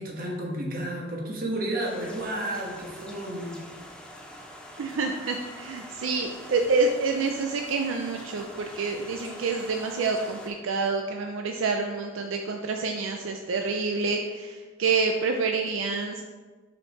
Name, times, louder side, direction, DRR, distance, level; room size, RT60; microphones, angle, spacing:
voice 1, 0.0-3.6, right 1 dB, 45° right, -1 dB, 1.2 m, -32 dB
sound 1, 1.8-10.5, equal, 5° left, 0.6 m, -44 dB
voice 2, 4.8-16.2, right 4 dB, 80° right, 3 dB, 0.4 m, -27 dB
5.2 x 4.5 x 4.7 m, 1.4 s
head